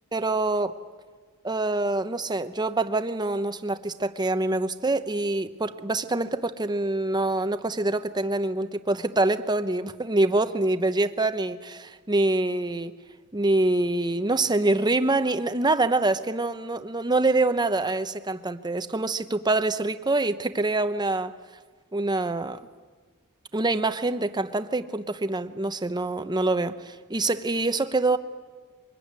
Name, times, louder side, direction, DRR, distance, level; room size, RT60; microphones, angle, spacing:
voice 1, 0.1-0.8 1.4-12.9 13.3-21.3 21.9-22.6 23.5-28.2, right 2 dB, 20° right, 10 dB, 0.9 m, -25 dB
24.0 x 21.5 x 9.6 m, 1.5 s
head